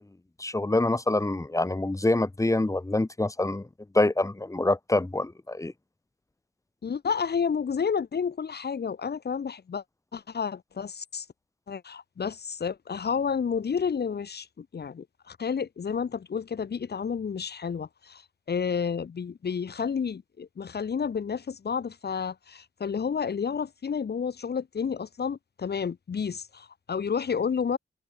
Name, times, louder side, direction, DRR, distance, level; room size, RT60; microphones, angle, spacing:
voice 1, 0.4-3.7 3.9-5.7, left 2 dB, 15° left, 1.9 m, -26 dB
voice 2, 6.8-9.8 10.1-11.2 11.7-18.2 18.5-27.8, left 6 dB, 55° left, 1.4 m, -30 dB
cardioid pair, 85°, 20 cm